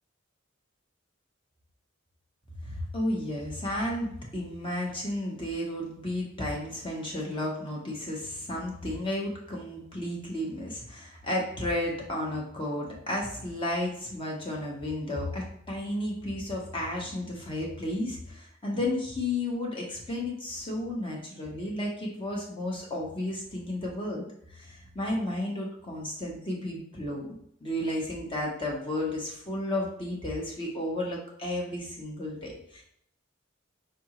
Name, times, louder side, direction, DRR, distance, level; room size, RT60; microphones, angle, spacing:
voice 1, 2.6-27.3 27.6-32.8, left 1 dB, 25° left, -2 dB, 0.9 m, -33 dB
4.8 x 3.4 x 3.0 m, 0.69 s
head